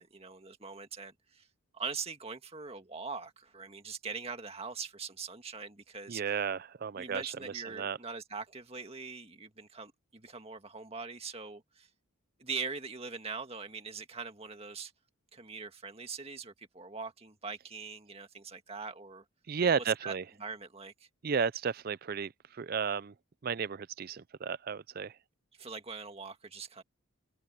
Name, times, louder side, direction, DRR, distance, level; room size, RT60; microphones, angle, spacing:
voice 1, 0.0-1.5 1.7-6.2 7.0-11.9 12.4-14.9 15.3-19.2 19.8-20.1 20.4-20.9 25.6-26.8, right 5 dB, 30° right, 1.9 m, -42 dB
voice 2, 6.1-8.0 19.5-20.2 21.2-23.1 23.4-25.2, right 6 dB, 45° right, 0.4 m, -33 dB
head